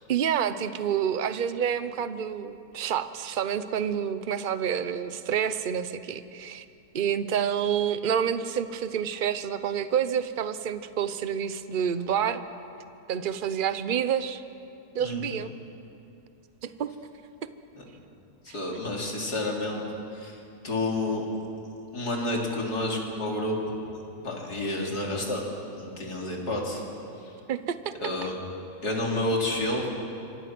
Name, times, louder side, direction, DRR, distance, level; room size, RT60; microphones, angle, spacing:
voice 1, 0.1-6.6 6.9-12.4 13.1-14.4 14.9-15.5 16.6-16.9 27.5-27.9, right 8 dB, 40° right, 12 dB, 0.8 m, -28 dB
voice 2, 18.5-19.8 20.1-20.4 20.6-21.2 21.9-23.8 24.2-25.4 25.7-26.8 28.0-28.3 28.8-29.9, left 2 dB, 85° left, -1 dB, 4.1 m, -29 dB
27.0 x 25.0 x 6.1 m, 2.7 s
omnidirectional pair, 1.6 m